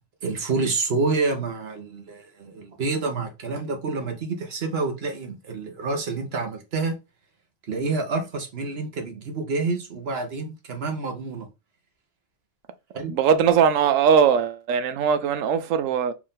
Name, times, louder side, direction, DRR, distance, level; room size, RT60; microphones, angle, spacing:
voice 1, 0.2-6.9 7.7-11.5 12.9-13.1, right 3 dB, 55° right, 1.2 m, -28 dB
voice 2, 13.1-16.1, right 7 dB, 90° right, 1.0 m, -20 dB
4.7 x 2.6 x 3.7 m
omnidirectional pair, 1.3 m